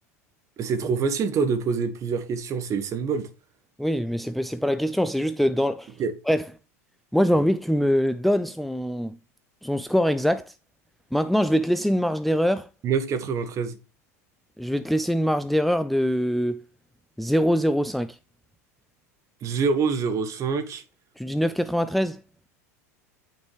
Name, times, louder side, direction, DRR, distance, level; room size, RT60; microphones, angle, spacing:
voice 1, 0.6-3.3 6.0-6.1 12.8-13.8 19.4-20.8, right 5 dB, 40° right, 1.6 m, -25 dB
voice 2, 3.8-5.9 6.3-6.5 7.1-9.2 9.6-10.5 11.1-12.7 14.6-16.6 17.2-18.2 21.2-22.2, equal, ahead, 0.5 m, -23 dB
9.2 x 5.3 x 3.2 m
hypercardioid pair, 85°, 8 cm